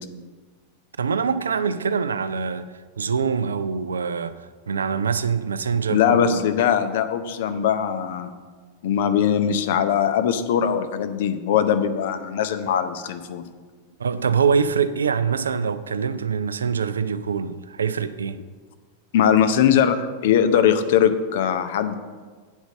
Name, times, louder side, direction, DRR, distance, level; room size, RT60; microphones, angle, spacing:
voice 1, 1.0-2.7 3.0-6.4 14.0-18.4, right 6 dB, 70° right, 0.4 m, -24 dB
voice 2, 5.9-8.3 8.8-13.4 19.1-21.9, left 8 dB, 55° left, 0.7 m, -21 dB
8.3 x 5.1 x 7.1 m
figure-of-eight pair, 90°, 0 cm